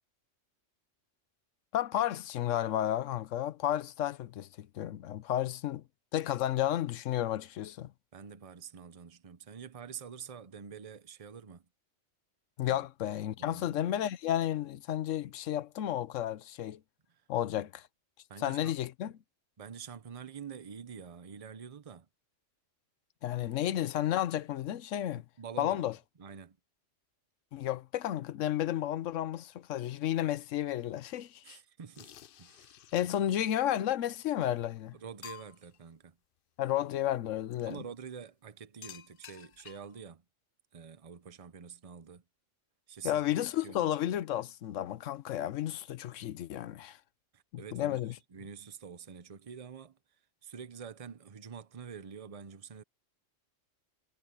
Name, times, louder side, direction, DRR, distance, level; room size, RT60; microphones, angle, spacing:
voice 1, 1.7-5.8 6.1-7.9 12.6-16.8 17.3-17.7 18.4-19.1 23.2-25.2 25.6-25.9 27.5-31.6 32.9-34.9 36.6-37.8 43.0-47.0 47.7-48.1, left 12 dB, 80° left, 1.0 m, -32 dB
voice 2, 8.1-11.7 12.6-12.8 13.4-13.8 17.1-17.2 17.5-17.6 18.3-18.8 19.6-22.1 23.5-23.6 25.1-25.8 26.2-26.6 31.4-32.1 32.4-32.7 33.0-33.3 34.9-36.2 37.7-40.2 40.7-42.2 42.9-43.2 43.6-43.9 47.3-50.0 50.4-52.8, right 6 dB, 30° right, 0.8 m, -47 dB
sound 1, 31.9-33.4 34.3-34.4 34.8-34.9 35.2-35.8 37.5-37.8 38.8-40.0, left 10 dB, 55° left, 0.7 m, -51 dB
omnidirectional pair, 1.3 m